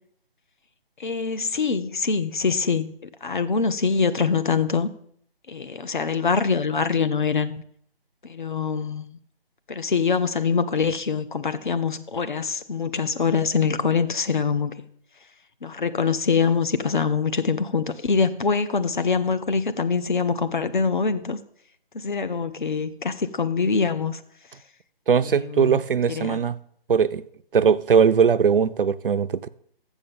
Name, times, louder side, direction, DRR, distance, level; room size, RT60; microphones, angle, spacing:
voice 1, 1.0-2.9 3.2-4.9 5.5-7.6 8.2-9.2 9.7-14.8 15.6-21.4 21.9-24.2 25.2-25.8 26.1-26.4, left 5 dB, 55° left, 0.7 m, -24 dB
voice 2, 25.1-26.6 26.9-27.2 27.5-29.5, right 6 dB, 60° right, 0.5 m, -20 dB
7.2 x 7.0 x 7.0 m
hypercardioid pair, 170°, 30 cm